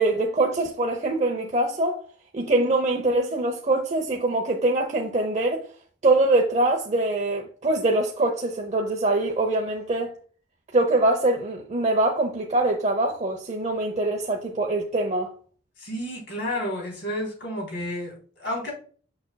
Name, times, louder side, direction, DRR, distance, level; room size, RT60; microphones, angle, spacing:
voice 1, 0.0-2.0 2.3-5.7 6.0-10.1 10.7-15.3, right 2 dB, 35° right, 0.7 m, -23 dB
voice 2, 15.8-18.7, left 1 dB, 65° left, 3.4 m, -31 dB
7.2 x 6.4 x 2.2 m
head